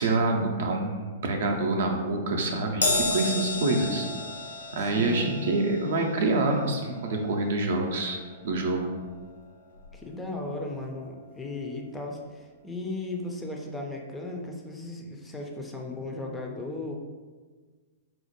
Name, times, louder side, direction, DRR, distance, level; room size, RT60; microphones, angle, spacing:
voice 1, 0.0-4.1 4.7-8.2 8.4-8.9, right 2 dB, 55° right, 2 dB, 0.4 m, -26 dB
Crash cymbal, 2.8-9.4 9.8-10.0 11.0-11.1, left 2 dB, 75° left, 0.7 m, -33 dB
voice 2, 4.8-5.3 9.9-17.0, left 2 dB, 10° left, 1 dB, 0.4 m, -36 dB
4.2 x 2.0 x 2.9 m, 1.4 s
figure-of-eight pair, 105°, 0 cm